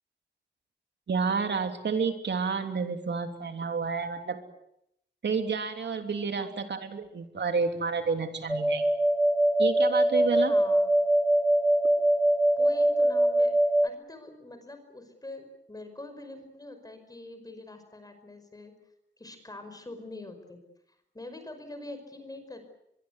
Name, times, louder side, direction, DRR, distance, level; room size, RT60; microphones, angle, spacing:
voice 1, 1.1-4.4 5.2-8.9 9.6-10.5, right 5 dB, 70° right, 6 dB, 3.3 m, -30 dB
voice 2, 6.4-6.7 10.3-10.9 12.6-13.6 13.8-18.7 19.2-20.6 21.1-22.6, left 2 dB, 20° left, 8 dB, 5.3 m, -44 dB
sound 1, 8.5-13.9, right 1 dB, ahead, 0.9 m, -23 dB
24.0 x 23.0 x 8.3 m, 0.78 s
wide cardioid pair, 110°, 19 cm